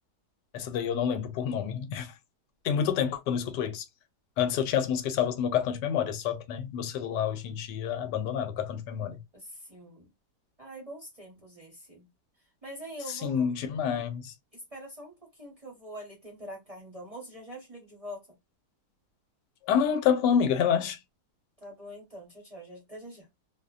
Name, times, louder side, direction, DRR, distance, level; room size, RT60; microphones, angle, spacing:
voice 1, 0.5-2.1 2.6-3.8 4.4-9.2 13.1-14.3 19.7-21.0, left 8 dB, 85° left, 1.2 m, -28 dB
voice 2, 9.3-10.1 10.6-12.1 12.6-13.5 14.5-18.2 21.6-23.3, equal, 30° right, 0.8 m, -44 dB
2.8 x 2.1 x 2.3 m
omnidirectional pair, 1.8 m